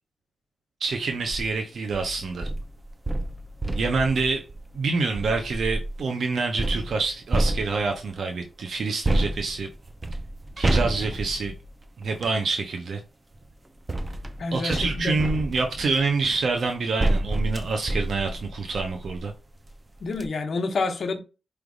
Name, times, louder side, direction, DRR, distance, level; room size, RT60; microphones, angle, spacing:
voice 1, 0.8-2.5 3.7-4.4 4.7-9.7 10.6-11.5 12.0-13.0 14.5-19.3, right 4 dB, 65° right, 0.7 m, -26 dB
sound 1, 1.1-1.5 1.9-6.0 6.6-8.1 9.0-12.4 13.3-19.3 19.7-19.8 20.1-20.3, right 1 dB, 25° right, 0.5 m, -29 dB
voice 2, 14.4-15.1 20.0-21.2, left 3 dB, 60° left, 1.0 m, -28 dB
5.0 x 3.2 x 2.4 m
wide cardioid pair, 105°, 0 cm